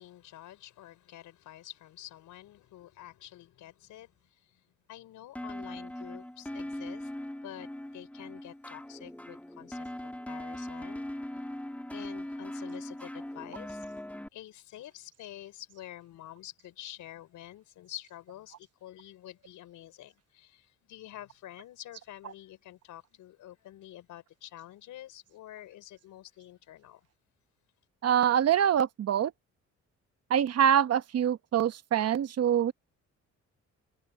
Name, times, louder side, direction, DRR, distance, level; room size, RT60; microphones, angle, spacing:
voice 1, 0.0-4.6 4.9-7.1 7.4-11.1 11.3-11.6 11.9-13.9 14.3-27.1, left 13 dB, 85° left, 4.8 m, -48 dB
sound 1, 5.3-14.3, left 1 dB, 5° left, 2.1 m, -40 dB
voice 2, 28.0-29.3 30.3-32.7, right 9 dB, 55° right, 1.0 m, -25 dB
cardioid pair, 90°, 30 cm